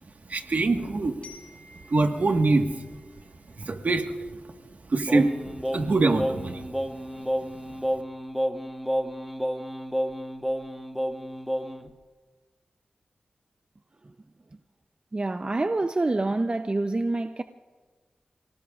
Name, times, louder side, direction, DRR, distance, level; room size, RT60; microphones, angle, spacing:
voice 1, 0.3-1.2 1.9-2.7 3.6-4.4 4.9-6.6, right 3 dB, 60° right, 1.5 m, -24 dB
Glockenspiel, 1.2-4.1, left 3 dB, 50° left, 5.1 m, -53 dB
Singing, 5.1-11.9, equal, 5° right, 1.0 m, -31 dB
voice 2, 15.1-17.4, right 2 dB, 35° right, 0.6 m, -26 dB
29.5 x 18.0 x 2.4 m
cardioid pair, 55°, 3 cm